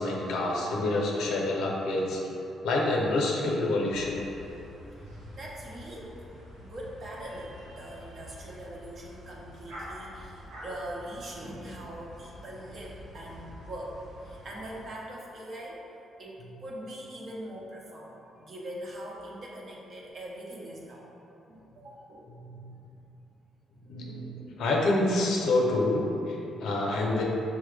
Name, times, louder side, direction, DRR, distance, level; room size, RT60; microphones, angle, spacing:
voice 1, 0.0-2.2 2.6-4.2 22.4-22.7 23.9-27.2, left 2 dB, 80° left, -2 dB, 0.6 m, -27 dB
sound 1, 3.9-14.9, equal, 85° right, 1.0 m, -47 dB
voice 2, 5.3-6.3 6.6-14.0 14.2-15.8 16.2-21.1 21.5-22.3, right 1 dB, 55° right, -4 dB, 0.8 m, -42 dB
5.8 x 2.1 x 3.2 m, 3.0 s
cardioid pair, 90°, 0 cm